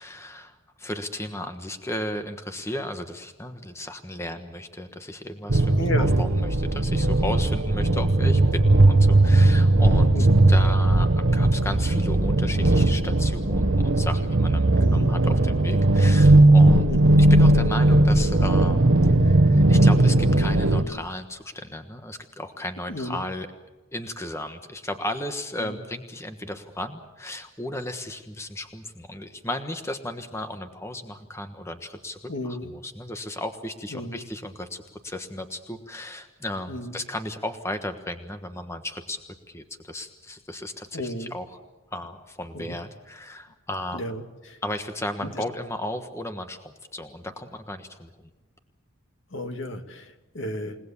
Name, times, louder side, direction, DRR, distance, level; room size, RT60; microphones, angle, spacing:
voice 1, 0.0-16.9 17.2-23.5 23.9-39.2 39.5-41.5 41.9-44.0 44.6-48.3, left 1 dB, 15° left, 7 dB, 1.3 m, -35 dB
sound 1, 5.5-20.8, right 2 dB, 65° right, 1.3 m, -18 dB
voice 2, 5.8-6.1 10.1-10.4 14.7-15.2 16.9-17.2 22.9-23.2 25.6-25.7 32.3-32.7 33.9-34.2 36.7-37.0 40.9-41.3 42.5-42.8 43.9-44.6 45.2-45.3 49.3-50.8, left 1 dB, 60° left, 6 dB, 2.1 m, -33 dB
29.5 x 19.0 x 7.2 m, 1.2 s
head